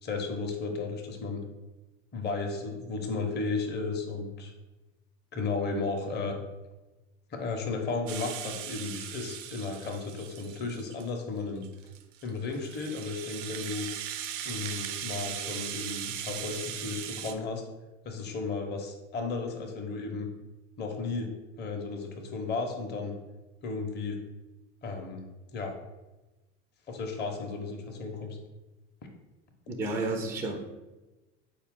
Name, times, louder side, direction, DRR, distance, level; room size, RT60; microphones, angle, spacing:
voice 1, 0.0-1.4 2.1-4.5 5.3-6.3 7.3-11.6 12.2-13.9 14.4-17.6 18.0-20.3 20.8-21.3 21.6-23.1 23.6-24.2 24.8-25.2 25.5-25.7 26.9-28.4, left 4 dB, 25° left, 2 dB, 0.7 m, -34 dB
Rattle (instrument), 8.1-11.1 11.6-17.3, right 10 dB, 75° right, 0.5 m, -39 dB
voice 2, 29.7-30.8, right 2 dB, 5° right, 3 dB, 0.3 m, -32 dB
4.1 x 2.4 x 3.6 m, 1.1 s
hypercardioid pair, 90°, 39 cm